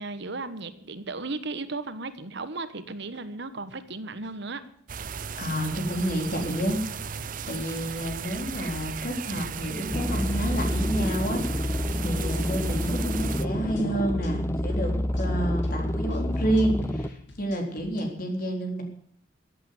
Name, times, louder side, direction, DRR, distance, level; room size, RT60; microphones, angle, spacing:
voice 1, 0.0-4.6, right 3 dB, 60° right, 12 dB, 1.2 m, -35 dB
sound 1, 2.0-2.1 2.8-3.2 3.6-3.7 4.1-4.3 4.9-5.4 5.7-5.9 6.3-6.6 7.0-18.0, left 1 dB, 65° left, 2.7 m, -44 dB
sound 2, 4.9-13.5, right 7 dB, 45° right, 0.5 m, -36 dB
voice 2, 5.4-7.2 7.4-11.6 12.0-18.8, right 1 dB, 45° left, 3 dB, 3.8 m, -29 dB
sound 3, 9.9-17.1, equal, 15° left, 0.7 m, -28 dB
15.0 x 8.6 x 9.6 m, 0.63 s
head